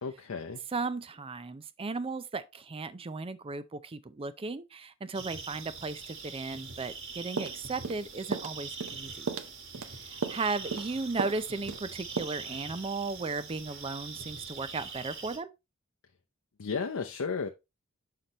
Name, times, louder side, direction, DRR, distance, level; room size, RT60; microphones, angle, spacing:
voice 1, 0.0-0.6 16.6-17.5, left 5 dB, 80° left, 0.6 m, -33 dB
voice 2, 0.7-9.4 9.9-15.5, right 3 dB, 25° right, 0.4 m, -36 dB
sound 1, 5.1-15.4, right 5 dB, 65° right, 1.6 m, -43 dB
sound 2, 7.4-8.0 8.3-8.5 8.8-9.0 9.3-9.9 10.2-10.4 10.7-10.9 11.2-11.4 11.7-11.8 12.2-12.3, right 4 dB, 80° right, 0.7 m, -34 dB
6.7 x 5.7 x 2.9 m
head